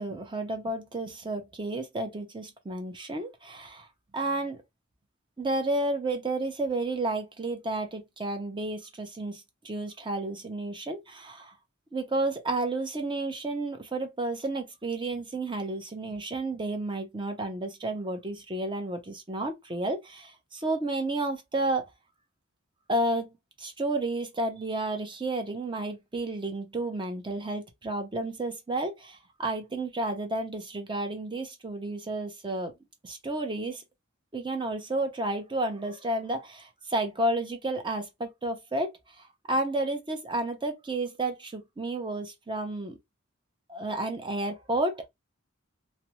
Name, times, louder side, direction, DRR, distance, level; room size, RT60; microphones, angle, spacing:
voice 1, 0.0-3.9 4.1-4.6 5.4-11.5 11.9-21.8 22.9-32.7 33.0-33.8 34.3-38.9 39.2-43.0 43.7-45.1, right 2 dB, 25° right, 0.7 m, -31 dB
2.5 x 2.1 x 2.9 m
head